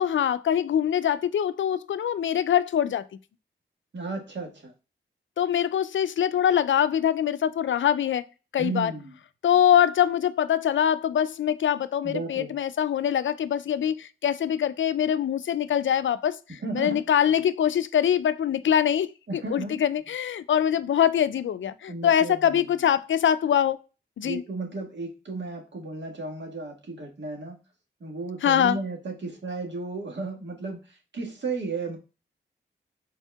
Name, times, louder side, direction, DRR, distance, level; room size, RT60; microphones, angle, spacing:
voice 1, 0.0-3.1 5.4-8.3 8.5-8.9 9.4-16.4 16.7-23.8 24.2-24.4 28.4-28.8, left 9 dB, 65° left, 0.5 m, -23 dB
voice 2, 3.9-4.7 8.6-9.1 12.0-12.5 16.5-17.0 19.3-19.8 21.9-22.8 24.2-27.6 28.0-32.0, right 3 dB, 60° right, 1.6 m, -34 dB
4.4 x 4.1 x 2.2 m
supercardioid pair, 40°, 21 cm